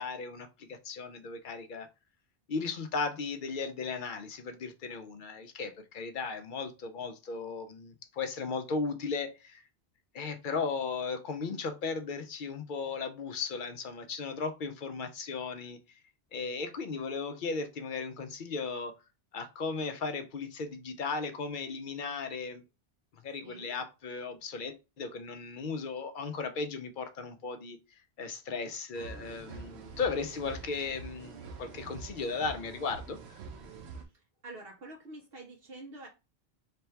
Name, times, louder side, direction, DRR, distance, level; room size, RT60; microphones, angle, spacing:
voice 1, 0.0-1.9 2.5-9.6 10.1-16.0 16.3-18.9 19.3-22.6 23.2-27.8 28.2-33.2, left 4 dB, 60° left, 0.6 m, -36 dB
voice 2, 23.4-23.7 34.4-36.1, right 2 dB, 65° right, 0.9 m, -47 dB
sound 1, 28.9-34.0, right 4 dB, 85° right, 0.9 m, -46 dB
3.3 x 2.2 x 4.4 m
omnidirectional pair, 1.1 m